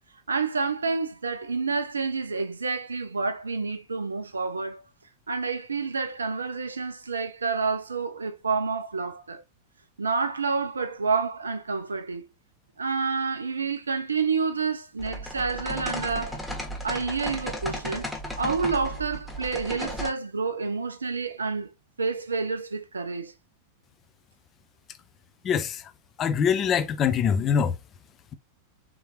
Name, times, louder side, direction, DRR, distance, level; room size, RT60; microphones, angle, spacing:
voice 1, 0.3-4.8 5.3-9.4 10.0-12.3 12.8-16.4 16.8-18.1 18.4-21.7 22.0-23.3, right 4 dB, 75° right, 0.4 m, -29 dB
sound 1, 15.0-20.1, equal, ahead, 1.4 m, -34 dB
voice 2, 26.2-27.7, left 7 dB, 30° left, 0.5 m, -23 dB
3.7 x 3.1 x 3.0 m
figure-of-eight pair, 90°, 0 cm